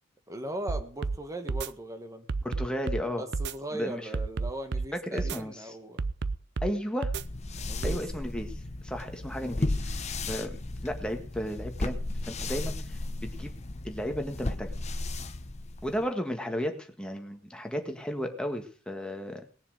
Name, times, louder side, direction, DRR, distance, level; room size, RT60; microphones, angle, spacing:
voice 1, 0.3-2.3 3.2-6.0 7.6-8.0, right 1 dB, 15° right, 1.4 m, -38 dB
sound 1, 0.7-1.2 1.5-1.7 2.3-3.0 3.3-3.5 4.1-4.9 5.2-5.4 6.0-6.7 7.0-7.2 7.8-8.0, right 4 dB, 60° right, 0.6 m, -30 dB
voice 2, 2.4-3.2 3.7-4.1 4.9-5.7 6.6-7.1 7.8-8.5 8.8-12.0 12.3-13.5 13.8-14.7 15.8-19.4, equal, 5° left, 1.7 m, -34 dB
sound 2, 7.1-16.1, left 2 dB, 35° left, 1.0 m, -35 dB
19.0 x 7.2 x 6.5 m
head